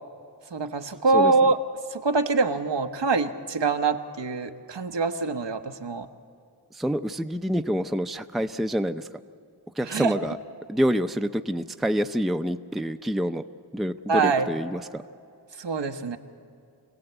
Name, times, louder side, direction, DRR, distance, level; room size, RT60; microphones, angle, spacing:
voice 1, 0.5-1.6 1.9-6.1 9.8-10.1 14.1-14.5 15.6-16.2, right 4 dB, 90° right, 6 dB, 1.1 m, -24 dB
voice 2, 6.7-9.1 9.8-10.4 10.7-13.4 13.7-15.0, equal, ahead, 8 dB, 0.5 m, -27 dB
25.5 x 17.0 x 8.1 m, 2.4 s
wide cardioid pair, 55°, 42 cm